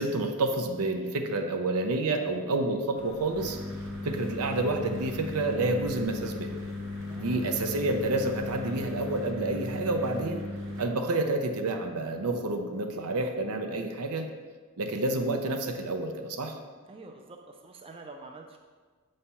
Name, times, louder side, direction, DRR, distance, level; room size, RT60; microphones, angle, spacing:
voice 1, 0.0-3.6 4.0-6.5 7.2-10.5 10.8-14.3 14.8-16.6, right 2 dB, 85° right, 5 dB, 0.7 m, -29 dB
sound 1, 2.9-9.1, left 1 dB, 65° left, 0.7 m, -49 dB
sound 2, 3.3-10.8, left 1 dB, 55° right, 0.9 m, -37 dB
voice 2, 7.1-7.5 16.9-18.6, right 3 dB, 25° right, 2 dB, 0.4 m, -47 dB
6.9 x 3.3 x 5.5 m, 1.5 s
head